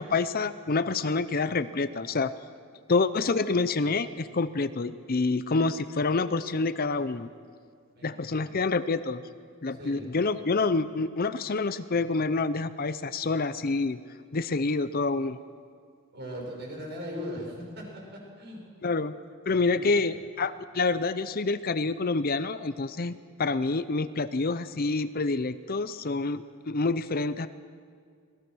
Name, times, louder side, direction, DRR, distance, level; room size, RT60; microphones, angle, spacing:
voice 1, 0.0-2.3 2.9-7.3 8.0-9.2 9.6-14.0 14.3-15.4 18.8-19.1 19.5-27.5, left 3 dB, 45° left, 13 dB, 0.7 m, -27 dB
voice 2, 8.0-8.7 9.8-10.2 16.1-17.8 18.4-18.6 19.7-20.0, equal, 50° right, 0 dB, 6.1 m, -39 dB
26.5 x 19.0 x 6.3 m, 2.1 s
head